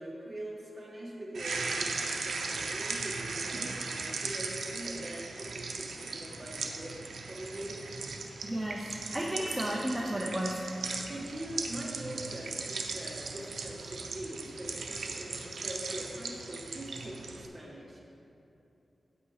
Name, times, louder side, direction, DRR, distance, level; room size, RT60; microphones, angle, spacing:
voice 1, 0.0-7.8 11.1-18.0, right 1 dB, 25° right, -4 dB, 1.6 m, -42 dB
sound 1, 1.3-17.5, right 4 dB, 85° right, 0.6 m, -38 dB
voice 2, 8.2-8.9 9.1-10.6, right 1 dB, 10° right, -2 dB, 0.6 m, -33 dB
9.1 x 8.0 x 3.2 m, 3.0 s
wide cardioid pair, 90°, 0 cm